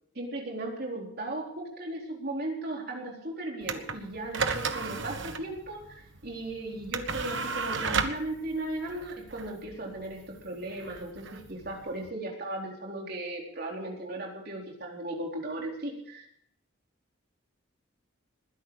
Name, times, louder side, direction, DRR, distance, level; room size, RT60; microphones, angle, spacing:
voice 1, 0.1-16.3, right 1 dB, 50° right, 0 dB, 4.2 m, -36 dB
sound 1, 3.6-12.1, right 4 dB, 65° right, 1.3 m, -34 dB
21.0 x 10.5 x 4.9 m, 0.69 s
head